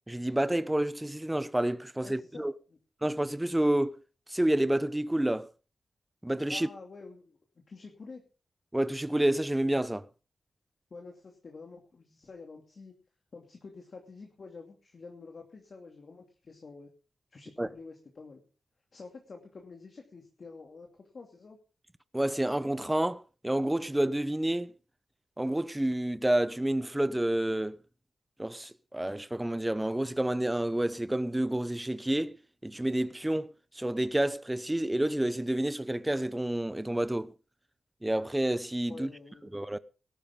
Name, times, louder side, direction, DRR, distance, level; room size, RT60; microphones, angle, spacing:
voice 1, 0.1-2.5 3.0-4.0 4.3-5.5 6.2-6.7 8.7-10.0 17.6-17.7 22.1-24.7 25.4-27.8 28.4-32.4 32.6-33.5 33.7-37.3 38.0-39.1 39.5-39.8, right 1 dB, 10° right, 0.8 m, -29 dB
voice 2, 2.0-2.8 6.5-7.4 7.7-8.2 10.9-12.9 13.3-16.9 17.3-18.4 18.9-21.6 38.9-39.5, left 4 dB, 50° left, 2.7 m, -48 dB
18.5 x 12.5 x 3.8 m
wide cardioid pair, 105°, 0 cm